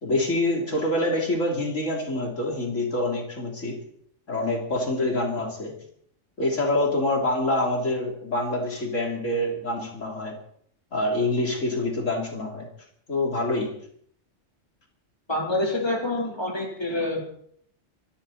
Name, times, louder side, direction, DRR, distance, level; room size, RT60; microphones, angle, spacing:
voice 1, 0.0-3.8 4.3-5.7 6.4-10.4 10.9-12.7 13.1-13.7, left 1 dB, 85° left, 0 dB, 3.8 m, -26 dB
voice 2, 15.3-17.2, left 2 dB, 20° left, -1 dB, 3.8 m, -27 dB
25.5 x 12.5 x 4.3 m, 0.65 s
omnidirectional pair, 1.3 m